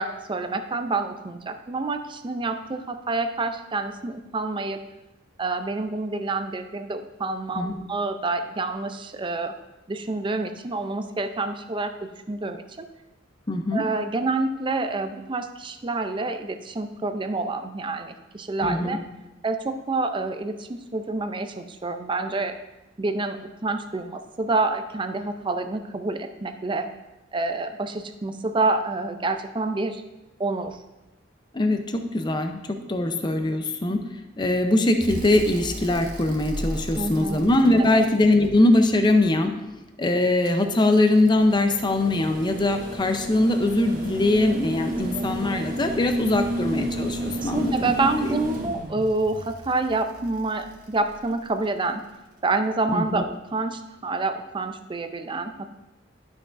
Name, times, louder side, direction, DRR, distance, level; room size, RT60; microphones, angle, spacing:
voice 1, 0.0-4.8 5.4-9.5 9.9-12.9 13.7-19.0 19.4-22.6 23.0-26.9 27.3-30.0 30.4-30.8 36.9-37.4 37.8-38.0 45.1-45.6 47.4-52.0 52.4-55.7, right 3 dB, 25° right, 8 dB, 0.5 m, -28 dB
voice 2, 13.5-13.8 18.6-19.0 31.5-34.0 34.4-39.5 40.0-47.9 48.2-48.4 52.9-53.2, left 2 dB, 25° left, 6 dB, 0.6 m, -22 dB
sound 1, 35.0-39.2 40.5-51.6 53.2-53.3, right 1 dB, 45° right, 1.2 m, -33 dB
11.5 x 6.1 x 2.6 m, 0.99 s
head